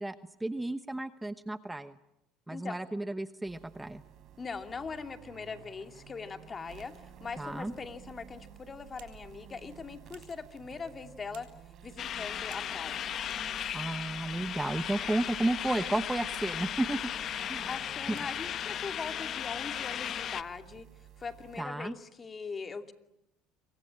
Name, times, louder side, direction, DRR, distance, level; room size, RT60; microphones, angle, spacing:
voice 1, 0.0-1.9 2.5-4.0 7.4-7.7 13.7-17.0 17.5-17.7 21.6-21.9, right 2 dB, 10° right, 11 dB, 1.0 m, -33 dB
sound 1, 3.5-21.6, right 10 dB, 55° right, 4.0 m, -52 dB
voice 2, 4.4-6.9 7.2-11.5 11.8-13.2 17.7-20.9 21.2-22.9, left 5 dB, 30° left, 7 dB, 2.5 m, -41 dB
sound 2, 8.4-20.8, right 12 dB, 80° right, 7.8 m, -64 dB
sound 3, 12.0-20.4, left 10 dB, 50° left, 1.2 m, -36 dB
28.0 x 23.5 x 8.8 m, 0.85 s
supercardioid pair, 90°, 0 cm